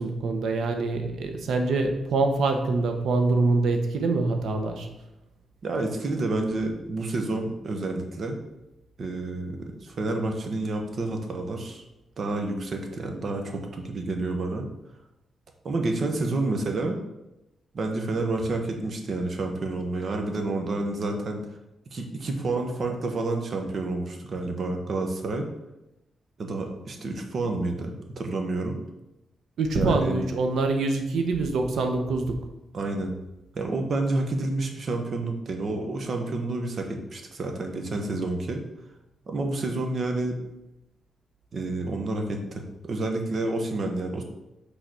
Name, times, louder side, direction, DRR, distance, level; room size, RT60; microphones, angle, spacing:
voice 1, 0.0-4.9 29.6-32.5, right 3 dB, 75° right, 5 dB, 1.1 m, -25 dB
voice 2, 5.6-8.4 9.0-11.8 12.2-14.6 15.6-17.0 17.7-21.4 21.9-25.5 26.4-28.8 29.7-30.1 32.7-33.1 33.5-38.6 39.3-40.4 41.5-44.2, right 2 dB, 45° right, 3 dB, 1.3 m, -29 dB
6.5 x 4.0 x 6.3 m, 0.93 s
wide cardioid pair, 130°, 0 cm